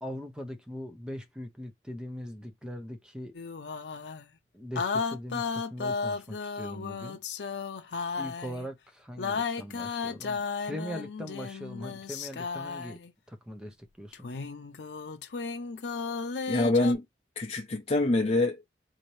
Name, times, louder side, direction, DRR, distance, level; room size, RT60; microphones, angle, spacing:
voice 1, 0.0-3.3 4.5-7.2 8.2-13.0 13.3-14.3, equal, 5° right, 0.7 m, -40 dB
sound 1, 3.3-4.3 4.8-8.7 9.2-13.1 14.1-16.9, left 5 dB, 75° left, 0.5 m, -34 dB
voice 2, 16.5-17.0 17.4-18.7, left 2 dB, 35° left, 0.6 m, -25 dB
4.0 x 2.8 x 3.1 m
head